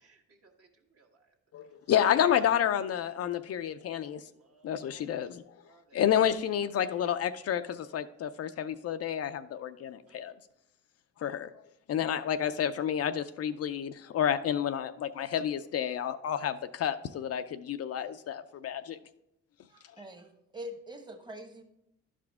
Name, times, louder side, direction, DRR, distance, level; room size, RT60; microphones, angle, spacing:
voice 1, 0.0-0.7 0.9-1.2 4.3-5.2 5.6-6.0 10.1-10.4, right 4 dB, 50° right, 2 dB, 1.5 m, -64 dB
voice 2, 1.5-4.2 4.6-5.4 5.9-10.3 11.2-11.5 11.9-19.0, left 9 dB, 55° left, 10 dB, 0.4 m, -30 dB
voice 3, 19.7-21.6, equal, 15° right, 4 dB, 1.1 m, -44 dB
11.5 x 4.9 x 3.5 m, 0.81 s
cardioid pair, 90°, 30 cm